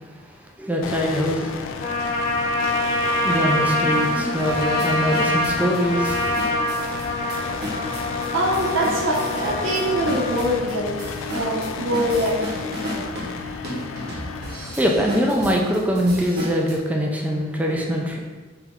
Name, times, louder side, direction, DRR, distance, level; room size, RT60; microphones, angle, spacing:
voice 1, 0.6-1.5 2.8-6.3 14.6-18.2, equal, 10° right, 0 dB, 0.4 m, -23 dB
sound 1, 0.8-16.8, left 5 dB, 85° left, 0.3 m, -33 dB
Trumpet, 1.8-10.5, left 1 dB, 40° left, 0.6 m, -25 dB
sound 2, 2.0-2.1 2.6-2.7 3.3-16.8, equal, 55° right, 1.0 m, -34 dB
voice 2, 8.3-11.0 11.3-12.4, right 1 dB, 75° right, -4 dB, 0.8 m, -23 dB
3.4 x 3.1 x 3.6 m, 1.3 s
head